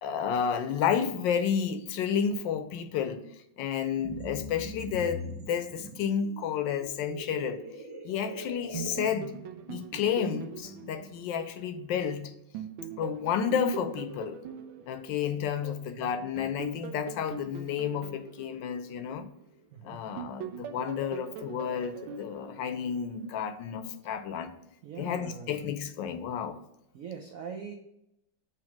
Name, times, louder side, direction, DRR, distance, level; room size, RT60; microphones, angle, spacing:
voice 1, 0.0-3.2 3.6-7.6 8.0-9.3 9.7-12.3 13.0-14.4 14.9-19.3 19.8-24.5 25.0-26.6, left 7 dB, 75° left, 10 dB, 1.2 m, -31 dB
sound 1, 4.0-9.1, equal, 30° right, 0.4 m, -42 dB
sound 2, 8.7-12.1 12.5-15.8 16.4-19.7 20.2-23.4, right 6 dB, 90° right, 1.5 m, -42 dB
voice 2, 15.6-16.1 19.7-20.0 24.8-25.7 26.9-27.7, right 6 dB, 70° right, 2 dB, 0.7 m, -43 dB
7.0 x 3.2 x 5.8 m, 0.82 s
omnidirectional pair, 2.1 m